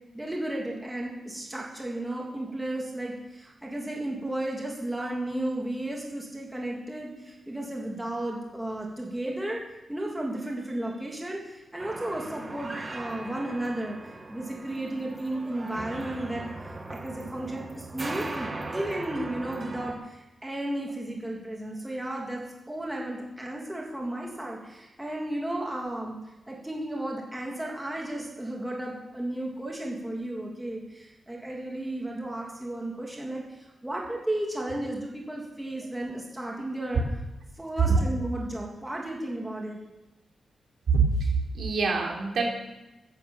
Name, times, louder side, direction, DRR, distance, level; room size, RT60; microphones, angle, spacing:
voice 1, 0.1-9.6 9.9-16.5 16.9-26.1 26.5-37.0 37.6-39.8, right 1 dB, 5° right, -2 dB, 3.0 m, -34 dB
sound 1, 11.8-19.9, right 2 dB, 25° right, 2.1 m, -39 dB
voice 2, 40.9-42.5, right 4 dB, 65° right, 0 dB, 3.5 m, -25 dB
16.0 x 9.9 x 7.3 m, 0.99 s
wide cardioid pair, 140°, 0 cm